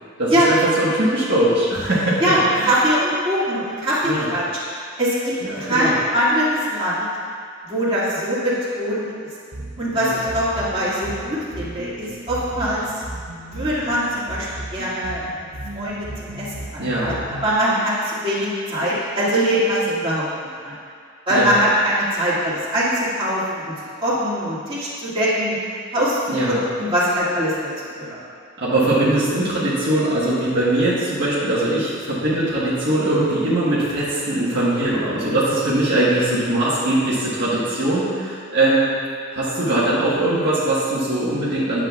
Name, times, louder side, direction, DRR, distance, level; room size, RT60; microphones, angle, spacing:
voice 1, 0.2-2.2 2.5-2.7 4.0-4.3 5.4-5.9 9.9-10.1 16.8-17.1 21.3-21.5 26.3-26.6 28.6-38.9 39.3-41.8, right 1 dB, 55° right, -9 dB, 1.3 m, -21 dB
voice 2, 2.2-4.4 5.0-7.1 7.6-9.3 9.8-13.0 13.5-15.2 15.7-20.2 20.6-20.7 21.3-23.7 24.0-25.6 25.9-27.5 28.0-28.2, equal, 25° right, -10 dB, 2.0 m, -22 dB
sound 1, 9.5-17.5, right 1 dB, 85° right, 1.0 m, -35 dB
10.5 x 7.4 x 2.3 m, 2.2 s
head